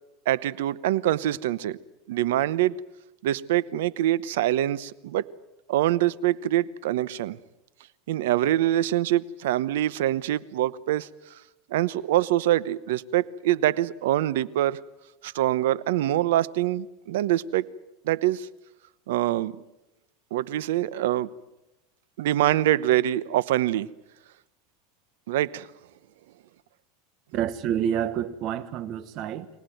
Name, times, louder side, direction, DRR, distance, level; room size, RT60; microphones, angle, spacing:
voice 1, 0.3-1.8 2.1-2.8 3.2-5.2 5.7-7.4 8.1-11.1 11.7-14.8 15.2-17.7 18.0-18.5 19.1-19.6 20.3-21.3 22.2-23.9 25.3-25.7, right 13 dB, 85° right, 0.9 m, -24 dB
voice 2, 27.3-29.5, right 9 dB, 45° right, 1.3 m, -28 dB
25.0 x 18.0 x 9.3 m
supercardioid pair, 150°, 0 cm